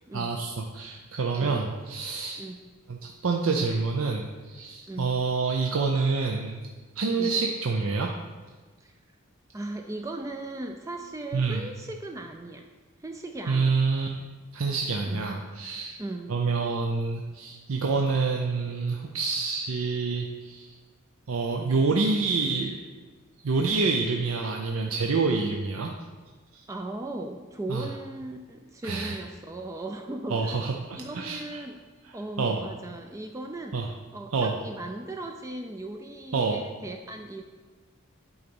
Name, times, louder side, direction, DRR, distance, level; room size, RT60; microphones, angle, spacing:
voice 1, 0.1-2.4 2.9-6.6 7.0-8.1 11.3-11.7 13.5-14.1 14.5-16.0 16.3-20.7 21.3-22.8 23.4-25.9 26.5-26.6 27.7-27.9 28.8-29.1 30.3-31.6 32.4-32.6 33.7-33.9 34.3-34.6 36.3-36.6, right 4 dB, 70° right, 1 dB, 0.6 m, -27 dB
voice 2, 9.5-12.7 13.0-13.8 15.1-15.3 16.0-16.4 26.7-30.7 30.9-31.8 32.1-37.4, right 2 dB, 15° right, 4 dB, 0.3 m, -38 dB
8.6 x 4.0 x 5.3 m, 1.4 s
head